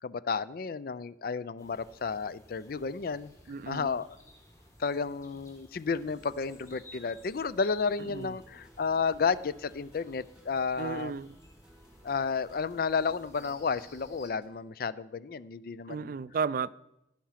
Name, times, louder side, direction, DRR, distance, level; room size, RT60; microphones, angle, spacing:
voice 1, 0.0-3.3 3.7-4.2 4.8-11.1 12.0-16.2, left 5 dB, 55° left, 0.4 m, -32 dB
sound 1, 1.6-14.3, left 1 dB, 20° left, 1.9 m, -56 dB
voice 2, 3.5-3.9 8.1-8.3 10.8-11.3 15.9-16.7, right 5 dB, 50° right, 0.3 m, -33 dB
sound 2, 6.0-14.6, right 1 dB, 5° right, 1.6 m, -59 dB
15.0 x 5.8 x 5.8 m
head